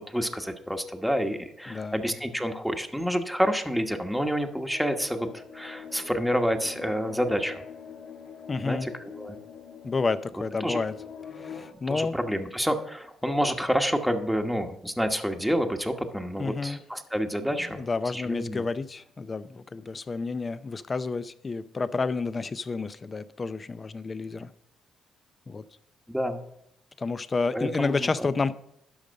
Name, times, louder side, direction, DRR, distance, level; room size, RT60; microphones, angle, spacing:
voice 1, 0.1-7.6 8.6-9.4 10.6-10.8 11.9-17.8 18.1-18.7 26.1-26.4 27.5-28.3, equal, ahead, 5 dB, 1.2 m, -28 dB
voice 2, 1.7-2.0 8.5-8.9 9.8-11.0 11.3-12.2 16.4-16.8 17.8-24.5 25.5-25.6 27.0-28.5, left 4 dB, 30° left, 15 dB, 0.6 m, -30 dB
sound 1, 4.7-11.7, left 7 dB, 75° left, 1.9 m, -43 dB
12.0 x 5.3 x 6.3 m, 0.74 s
cardioid pair, 90°, 0 cm